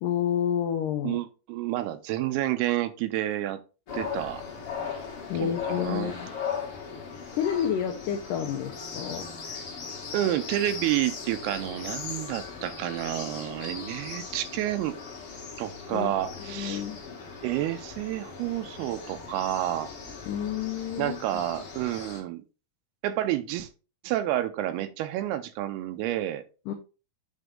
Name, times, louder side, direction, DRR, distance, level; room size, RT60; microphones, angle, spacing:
voice 1, 0.0-1.2 5.3-6.3 7.3-9.3 15.9-16.1 16.4-17.0 20.3-21.4 26.7-26.8, left 9 dB, 85° left, 5 dB, 1.9 m, -29 dB
voice 2, 1.0-3.6 3.9-4.4 5.3-6.1 9.5-9.6 10.1-14.9 15.6-16.8 17.4-19.9 21.0-22.4 23.0-23.7 24.0-26.4, right 13 dB, 80° right, 11 dB, 2.6 m, -29 dB
sound 1, 3.9-22.2, left 5 dB, 45° left, 2.0 m, -38 dB
9.1 x 3.4 x 3.7 m, 0.33 s
omnidirectional pair, 4.7 m